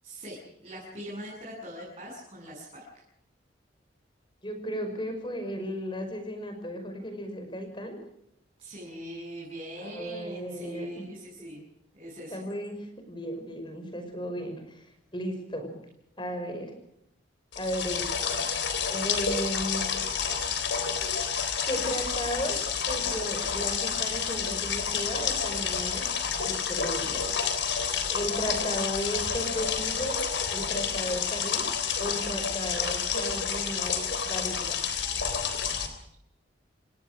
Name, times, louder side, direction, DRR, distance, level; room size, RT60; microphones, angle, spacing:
voice 1, 0.0-2.9 8.6-11.6 11.9-12.4, equal, 30° right, -4 dB, 8.0 m, -41 dB
voice 2, 4.4-8.0 9.8-10.9 12.3-14.9 15.1-15.7 16.2-16.7 17.6-18.4 18.9-19.8 21.7-22.6 22.9-26.1 26.4-27.3 28.1-30.2 30.5-31.7 32.0-34.8, equal, 25° left, 6 dB, 5.6 m, -35 dB
sound 1, 17.5-35.9, left 6 dB, 70° left, 3.6 m, -29 dB
29.0 x 17.5 x 6.3 m, 0.77 s
head